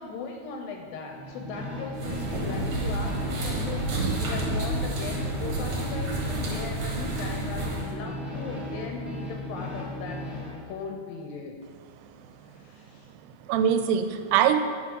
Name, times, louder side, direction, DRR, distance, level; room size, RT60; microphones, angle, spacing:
voice 1, 0.0-11.6 12.4-13.1, left 4 dB, 75° left, 3 dB, 2.2 m, -38 dB
sound 1, 1.1-10.6, left 1 dB, ahead, 1.3 m, -36 dB
sound 2, 1.9-7.9, right 2 dB, 55° right, 1.5 m, -30 dB
voice 2, 12.0-12.7 13.2-14.6, right 9 dB, 90° right, 9 dB, 2.7 m, -25 dB
10.0 x 6.6 x 5.3 m, 2.1 s
omnidirectional pair, 4.6 m